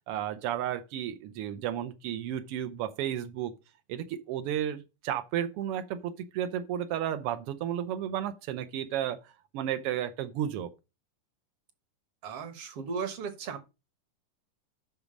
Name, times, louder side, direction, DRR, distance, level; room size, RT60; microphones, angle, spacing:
voice 1, 0.1-3.5 3.9-9.2 9.5-10.7, right 10 dB, 85° right, 1.3 m, -33 dB
voice 2, 12.2-13.6, right 5 dB, 55° right, 1.9 m, -36 dB
8.7 x 6.1 x 5.2 m
omnidirectional pair, 3.8 m